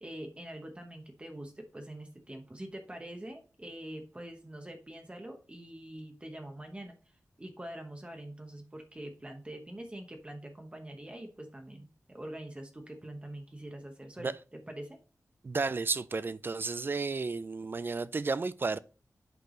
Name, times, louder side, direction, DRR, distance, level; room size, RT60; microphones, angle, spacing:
voice 1, 0.0-6.9 7.4-15.0, right 1 dB, 20° right, 1.0 m, -44 dB
voice 2, 15.4-18.8, right 4 dB, 35° right, 0.4 m, -32 dB
8.1 x 4.6 x 3.8 m
wide cardioid pair, 130°, 6 cm